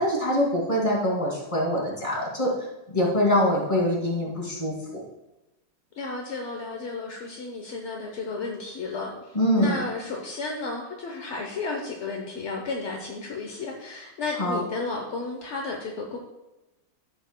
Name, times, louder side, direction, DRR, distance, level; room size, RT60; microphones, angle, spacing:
voice 1, 0.0-2.5 2.9-5.0 9.3-9.8 14.4-14.6, left 1 dB, 15° left, -5 dB, 2.5 m, -24 dB
voice 2, 5.9-16.2, left 3 dB, 55° left, 0 dB, 0.8 m, -33 dB
13.5 x 7.3 x 2.2 m, 1.0 s
omnidirectional pair, 2.3 m